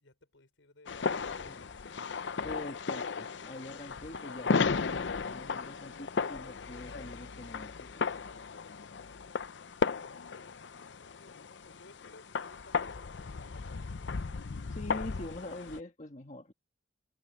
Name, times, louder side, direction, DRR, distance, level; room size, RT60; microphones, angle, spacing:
voice 1, 0.0-1.9 11.1-14.1, left 2 dB, 85° left, 5.5 m, -60 dB
sound 1, 0.9-15.8, left 4 dB, 70° left, 0.6 m, -35 dB
Sigh, 1.4-1.9, left 1 dB, 15° left, 1.1 m, -58 dB
voice 2, 2.4-8.0 14.7-16.5, left 1 dB, 40° left, 1.6 m, -44 dB
head